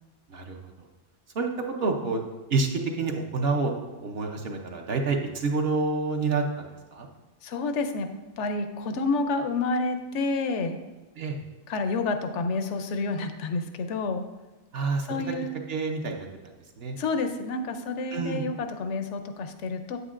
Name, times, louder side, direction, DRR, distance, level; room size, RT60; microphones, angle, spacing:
voice 1, 1.8-2.2 2.5-7.1 11.2-11.4 14.7-15.0 15.7-16.3 16.8-17.0 18.1-18.4, right 3 dB, 60° right, 2 dB, 1.0 m, -28 dB
voice 2, 7.4-8.1 8.4-10.8 11.7-14.2 15.1-15.5 16.9-20.0, left 3 dB, 80° left, 8 dB, 0.9 m, -29 dB
8.3 x 8.0 x 2.5 m, 1.2 s
omnidirectional pair, 1.2 m